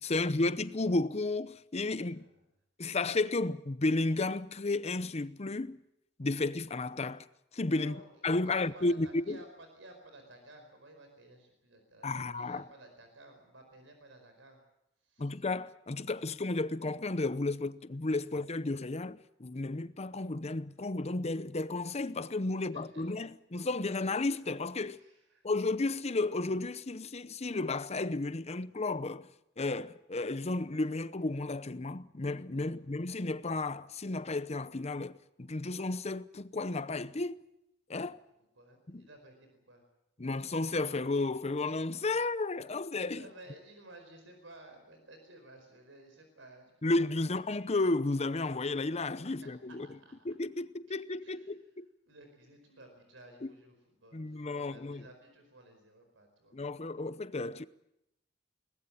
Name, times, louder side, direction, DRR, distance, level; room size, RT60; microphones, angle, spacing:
voice 1, 0.0-2.3 2.8-5.8 6.2-7.2 7.5-7.9 8.2-9.4 12.0-12.6 15.2-25.0 25.4-29.3 29.6-35.1 35.4-37.4 37.9-38.2 38.9-39.0 40.2-43.3 46.8-49.9 50.2-51.9 53.4-53.5 54.1-55.0 56.5-57.7, left 2 dB, 35° left, 0.8 m, -33 dB
voice 2, 7.8-14.6 15.0-15.3 22.6-23.2 24.9-25.5 32.7-32.8 38.6-39.8 43.1-47.3 49.4-50.2 51.2-51.7 52.1-56.8 57.0-57.2, right 2 dB, 85° right, 4.7 m, -55 dB
22.0 x 19.5 x 8.6 m
head